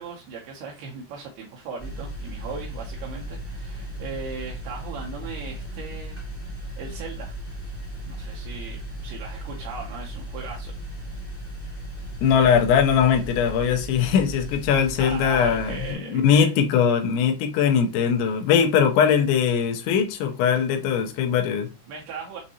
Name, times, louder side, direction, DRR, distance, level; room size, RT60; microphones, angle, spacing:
voice 1, 0.0-6.2 6.8-7.3 8.1-10.8 15.0-16.5 21.9-22.4, right 5 dB, 85° right, 2.2 m, -38 dB
sound 1, 1.8-15.9, right 1 dB, 10° left, 0.6 m, -36 dB
voice 2, 12.2-21.7, left 7 dB, 80° left, 3.1 m, -21 dB
7.2 x 2.6 x 2.8 m
omnidirectional pair, 5.4 m